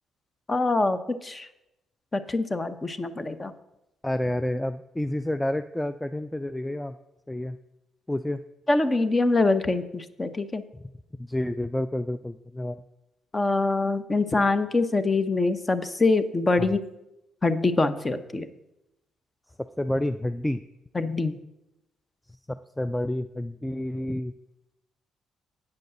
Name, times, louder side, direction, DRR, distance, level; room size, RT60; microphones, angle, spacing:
voice 1, 0.5-1.5 2.1-3.5 8.7-10.6 13.3-16.8 17.4-18.5 20.9-21.4, left 3 dB, 25° left, 12 dB, 0.7 m, -24 dB
voice 2, 4.0-6.9 7.3-7.6 8.1-8.4 11.2-12.8 16.6-16.7 19.8-20.6 22.8-24.3, left 1 dB, 5° left, 11 dB, 0.3 m, -29 dB
8.3 x 5.3 x 7.7 m, 0.90 s
cardioid pair, 90°, 0 cm